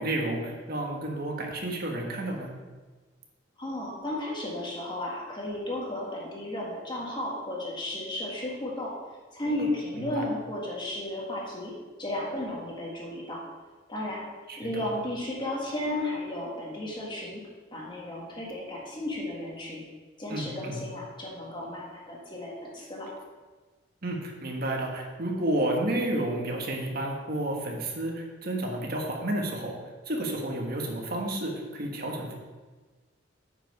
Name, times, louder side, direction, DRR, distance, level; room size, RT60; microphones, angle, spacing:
voice 1, 0.0-2.5 9.9-10.2 14.5-14.9 20.3-20.8 24.0-29.7 30.0-32.4, right 1 dB, 50° right, 0 dB, 1.4 m, -31 dB
voice 2, 3.6-8.9 9.3-11.7 12.0-13.4 13.9-14.2 14.6-17.4 17.7-19.8 20.2-23.1, left 1 dB, 25° left, -3 dB, 1.6 m, -34 dB
8.8 x 5.3 x 4.7 m, 1.3 s
head